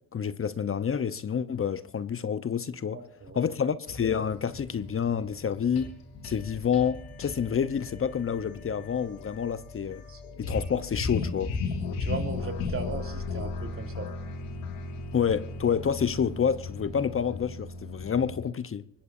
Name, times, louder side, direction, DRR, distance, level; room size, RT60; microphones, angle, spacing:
voice 1, 0.1-3.0 3.3-5.9 6.2-10.0 10.4-11.5 15.1-18.8, left 7 dB, 40° left, 1.0 m, -28 dB
voice 2, 2.9-3.5 10.1-10.6 11.9-14.1, right 4 dB, 40° right, 3.8 m, -38 dB
sound 1, 3.9-18.4, left 4 dB, 90° left, 3.9 m, -36 dB
24.0 x 20.5 x 2.7 m
supercardioid pair, 65°, 34 cm